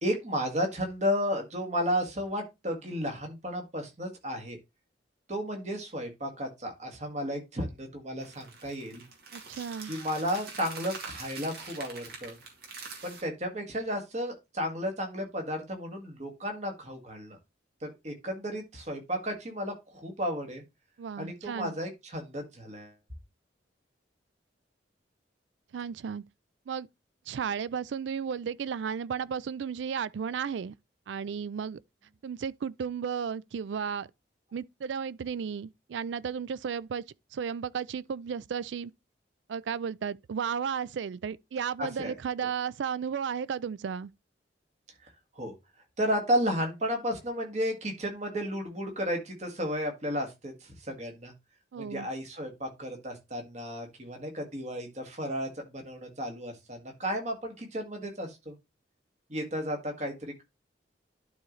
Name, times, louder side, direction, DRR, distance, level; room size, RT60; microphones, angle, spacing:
voice 1, 0.0-4.6 5.3-9.0 9.8-12.4 13.0-17.4 17.8-20.6 21.2-22.9 41.8-42.1 45.4-45.5 46.0-51.3 51.8-58.5 59.3-60.4, equal, 40° right, 1.9 m, -33 dB
sound 1, 8.2-13.2, right 4 dB, 55° right, 2.4 m, -44 dB
voice 2, 9.3-9.9 21.0-21.7 25.7-26.2 26.7-26.9 27.3-30.7 31.1-31.8 32.2-34.1 34.5-37.0 37.3-38.9 39.5-44.1 51.7-52.1, right 7 dB, 80° right, 0.4 m, -34 dB
11.5 x 3.9 x 3.1 m
head